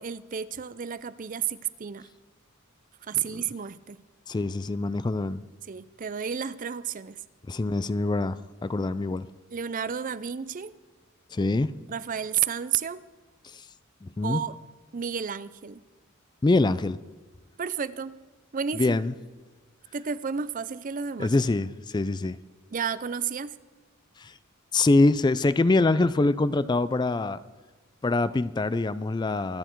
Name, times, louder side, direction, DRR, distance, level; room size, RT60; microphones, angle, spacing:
voice 1, 0.0-2.1 3.0-4.0 5.7-7.2 9.5-10.7 11.9-13.0 14.2-14.6 14.9-15.8 17.6-18.2 18.5-19.0 19.9-21.3 22.7-23.6, right 7 dB, 40° right, 16 dB, 0.5 m, -31 dB
voice 2, 4.3-5.4 7.5-9.3 11.3-11.7 13.5-13.6 14.0-14.4 16.4-17.0 18.7-19.1 21.2-22.4 24.2-24.3 24.7-27.4 28.0-29.6, left 2 dB, 20° left, 15 dB, 0.3 m, -24 dB
24.5 x 10.0 x 4.6 m, 1.3 s
head